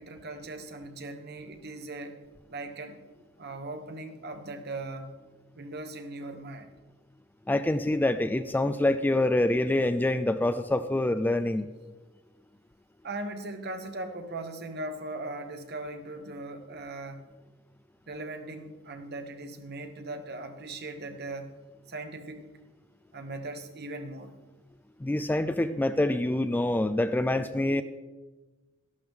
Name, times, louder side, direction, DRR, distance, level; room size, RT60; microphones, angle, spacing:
voice 1, 0.0-2.2 2.5-3.0 3.4-5.1 5.5-6.7 13.0-17.3 18.1-21.5 21.9-22.5 23.1-24.3, right 2 dB, 55° right, 7 dB, 1.2 m, -39 dB
voice 2, 7.5-11.7 25.0-27.8, left 1 dB, 10° left, 11 dB, 0.3 m, -26 dB
13.0 x 12.0 x 3.6 m, 1.2 s
head